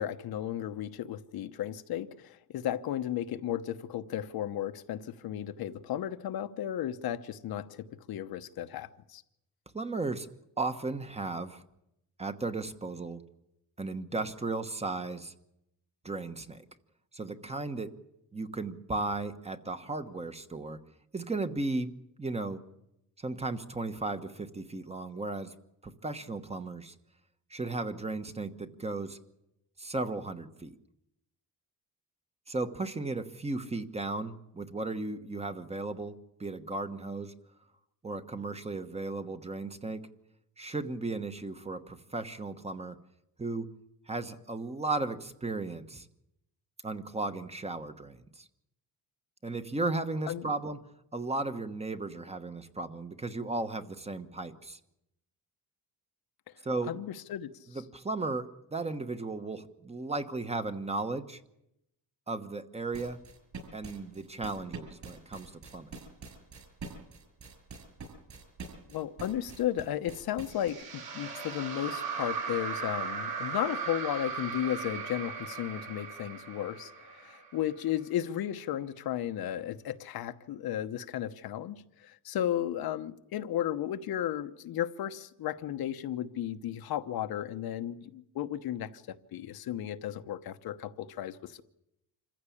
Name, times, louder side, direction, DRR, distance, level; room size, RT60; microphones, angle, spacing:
voice 1, 0.0-9.2 50.3-50.5 56.9-57.8 68.9-91.6, left 11 dB, 70° left, 1.0 m, -34 dB
voice 2, 9.7-10.3 10.6-11.6 12.2-13.2 13.8-15.3 16.0-16.6 17.1-18.0 18.3-20.8 21.1-22.6 23.2-25.5 25.8-26.9 27.5-29.2 29.8-30.7 32.5-37.3 38.0-40.1 40.6-43.0 43.4-43.7 44.1-46.1 46.8-48.5 49.4-50.8 51.1-54.8 56.6-56.9 57.7-61.4 62.3-63.2 63.7-65.9, right 3 dB, 15° right, 1.1 m, -35 dB
sound 1, 62.9-70.7, right 4 dB, 50° right, 6.9 m, -45 dB
sound 2, 70.5-77.8, right 5 dB, 70° right, 6.8 m, -37 dB
26.5 x 15.0 x 8.5 m
cardioid pair, 135°, 38 cm